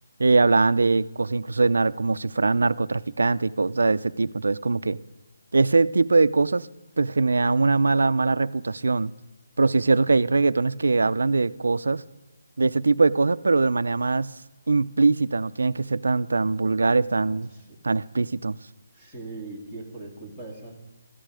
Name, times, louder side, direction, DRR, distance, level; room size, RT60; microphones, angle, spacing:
voice 1, 0.2-5.0 5.5-6.7 7.0-9.1 9.6-12.0 12.6-14.3 14.7-17.5 17.8-18.6, right 3 dB, 80° right, 0.5 m, -22 dB
voice 2, 17.1-17.8 18.9-20.8, right 3 dB, 5° left, 2.1 m, -40 dB
16.0 x 13.5 x 5.0 m
hypercardioid pair, 175°, 0 cm